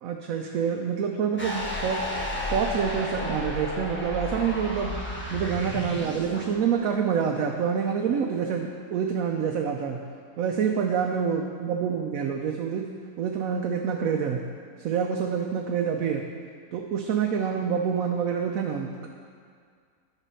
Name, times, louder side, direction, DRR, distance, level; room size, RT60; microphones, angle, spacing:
voice 1, 0.0-2.0 2.5-4.9 5.3-10.0 10.4-12.9 13.2-14.4 14.8-16.3 16.7-19.1, right 7 dB, 75° right, 2 dB, 1.0 m, -27 dB
sound 1, 1.4-6.5, left 1 dB, 10° left, 1.0 m, -32 dB
11.5 x 4.1 x 5.5 m, 2.1 s
omnidirectional pair, 1.5 m